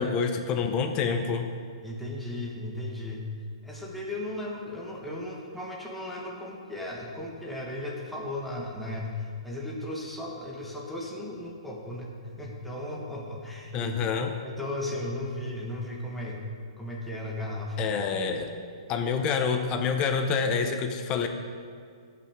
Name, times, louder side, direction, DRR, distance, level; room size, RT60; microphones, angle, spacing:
voice 1, 0.0-1.5 13.7-14.3 17.8-18.5 18.9-21.3, left 5 dB, 25° left, 6 dB, 0.8 m, -27 dB
voice 2, 1.8-3.3 3.6-13.9 14.4-17.8, left 1 dB, 5° left, -3 dB, 1.5 m, -36 dB
17.5 x 5.8 x 3.6 m, 2.1 s
hypercardioid pair, 145°, 3 cm